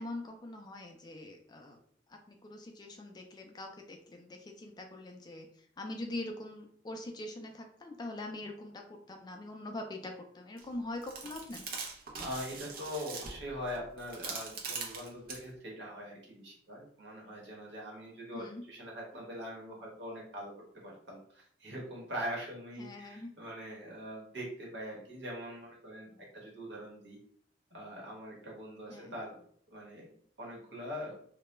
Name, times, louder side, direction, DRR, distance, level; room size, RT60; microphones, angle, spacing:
voice 1, 0.0-1.8 2.1-11.7 18.3-18.7 22.8-23.3 28.9-29.1, left 2 dB, 25° left, 3 dB, 0.3 m, -43 dB
sound 1, 10.6-10.7 11.0-15.4, right 4 dB, 55° right, 0.6 m, -42 dB
voice 2, 12.2-27.2 27.7-29.4 29.7-30.1 30.4-31.2, equal, 75° right, -3 dB, 1.0 m, -42 dB
2.2 x 2.1 x 3.0 m, 0.63 s
head